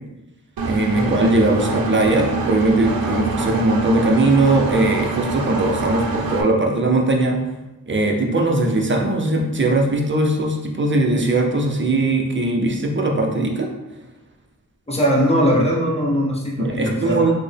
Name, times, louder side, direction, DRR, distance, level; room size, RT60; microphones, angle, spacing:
voice 1, 0.6-7.4 7.9-13.7 16.6-17.3, right 2 dB, 35° right, 1 dB, 0.5 m, -19 dB
Engine, 0.6-6.4, right 3 dB, 85° right, 0.5 m, -25 dB
voice 2, 14.9-17.3, equal, 20° left, -3 dB, 0.7 m, -20 dB
4.2 x 2.0 x 3.3 m, 1.0 s
wide cardioid pair, 95°, 35 cm